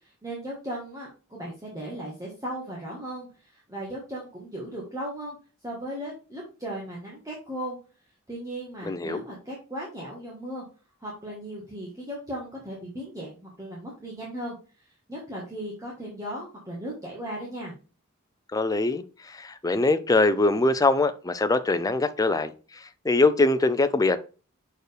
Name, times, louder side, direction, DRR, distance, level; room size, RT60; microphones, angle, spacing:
voice 1, 0.0-5.4 5.6-7.8 8.3-10.6 11.0-14.6 15.1-17.7, right 1 dB, 15° right, 1.5 m, -37 dB
voice 2, 8.8-9.2 18.5-24.2, left 2 dB, 15° left, 0.5 m, -23 dB
6.3 x 4.5 x 3.3 m
head